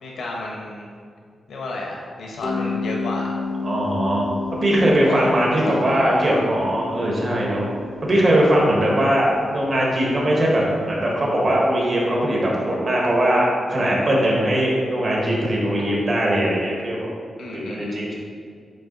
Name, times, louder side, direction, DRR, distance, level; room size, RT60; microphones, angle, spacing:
voice 1, 0.0-0.9 1.5-3.3 5.0-6.1 17.4-18.1, left 2 dB, 80° left, -1 dB, 1.0 m, -32 dB
Mallet percussion, 2.4-11.2, left 3 dB, 25° left, 0.6 m, -32 dB
voice 2, 3.6-4.3 4.6-7.7 8.0-17.1 17.5-18.1, right 1 dB, 35° right, -4 dB, 1.4 m, -20 dB
8.3 x 3.3 x 4.0 m, 2.2 s
wide cardioid pair, 175°, 0 cm